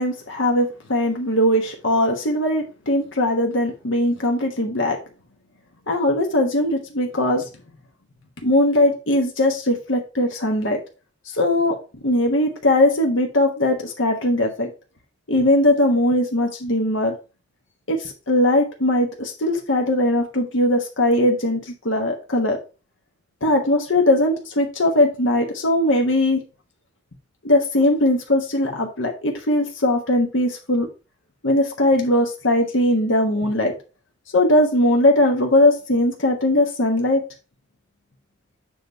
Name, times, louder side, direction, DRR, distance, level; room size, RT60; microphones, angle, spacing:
voice 1, 0.0-5.0 5.9-7.5 8.4-10.8 11.3-11.7 12.0-14.7 15.3-17.2 17.9-22.6 23.4-26.4 27.4-30.9 31.4-33.7 34.3-37.2, left 1 dB, 85° left, 2 dB, 1.3 m, -20 dB
7.6 x 3.1 x 5.2 m, 0.32 s
head